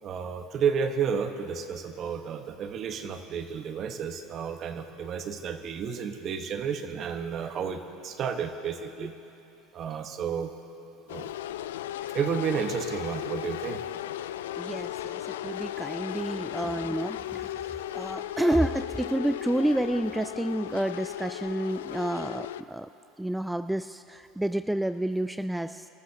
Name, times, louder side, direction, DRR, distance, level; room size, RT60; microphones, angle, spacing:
voice 1, 0.0-9.1 9.7-10.5 11.1-11.3 12.1-13.9, right 7 dB, 45° right, 7 dB, 1.1 m, -31 dB
sound 1, 11.1-22.6, left 12 dB, 75° left, 0.3 m, -36 dB
voice 2, 14.6-22.9 23.2-25.9, right 1 dB, 5° right, 10 dB, 0.3 m, -29 dB
29.0 x 14.0 x 2.8 m, 2.9 s
hypercardioid pair, 80°, 0 cm